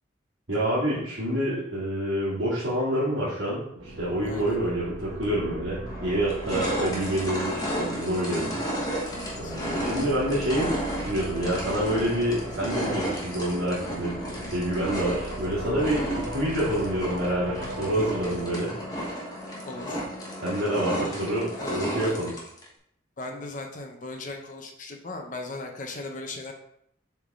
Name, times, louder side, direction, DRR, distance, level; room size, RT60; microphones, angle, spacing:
voice 1, 0.5-8.5 8.8-9.0 9.4-14.2 14.5-19.2 20.4-22.3, right 1 dB, 70° right, -10 dB, 2.2 m, -27 dB
sound 1, 3.8-18.5, right 1 dB, 90° right, 1.1 m, -39 dB
voice 2, 4.2-4.6 9.1-9.6 15.8-16.1 19.7-20.0 20.6-20.7 21.6-22.3 23.2-26.5, left 2 dB, 40° left, 3 dB, 0.8 m, -38 dB
sound 2, 5.2-5.3 5.9-22.7, equal, 20° left, 1.2 m, -33 dB
7.2 x 3.6 x 3.7 m, 0.72 s
head